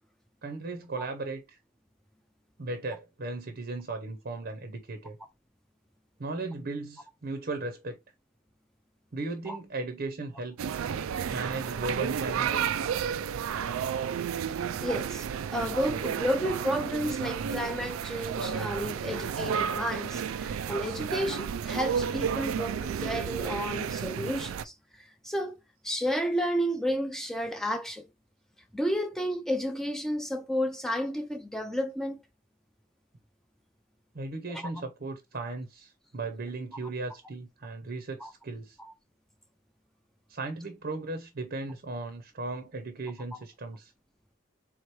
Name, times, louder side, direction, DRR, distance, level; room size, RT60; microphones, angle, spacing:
voice 1, 0.4-1.6 2.6-5.2 6.2-8.0 9.1-10.7 11.3-12.8 34.1-38.8 40.3-43.9, right 3 dB, 50° right, 0.7 m, -36 dB
sound 1, 10.6-24.6, right 7 dB, 90° right, 0.4 m, -32 dB
voice 2, 14.8-15.3 15.5-25.5 25.8-28.1 28.7-32.2 34.5-34.6 38.2-38.3 38.8-38.9, equal, ahead, 0.5 m, -31 dB
3.6 x 3.0 x 4.6 m
head